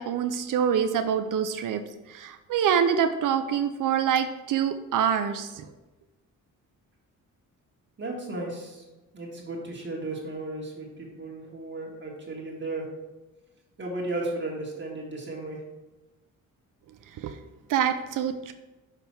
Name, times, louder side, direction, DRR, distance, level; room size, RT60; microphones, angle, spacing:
voice 1, 0.0-1.8 2.1-5.7 17.2-17.4 17.7-18.5, right 8 dB, 75° right, 8 dB, 0.5 m, -25 dB
voice 2, 8.0-8.8 9.1-12.9 13.8-15.6, right 2 dB, 35° right, -2 dB, 1.5 m, -34 dB
5.8 x 5.3 x 4.4 m, 1.1 s
cardioid pair, 130°, 32 cm